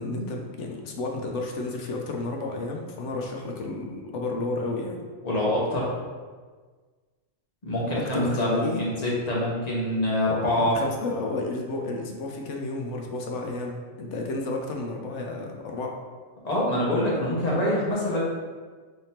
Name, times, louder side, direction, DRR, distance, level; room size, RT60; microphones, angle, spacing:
voice 1, 0.0-5.1 7.8-8.9 10.6-16.0, left 2 dB, 70° left, 1 dB, 0.9 m, -31 dB
voice 2, 5.2-5.9 7.6-10.8 16.4-18.2, left 1 dB, 35° left, -6 dB, 1.0 m, -25 dB
3.6 x 3.5 x 2.8 m, 1.5 s
omnidirectional pair, 1.3 m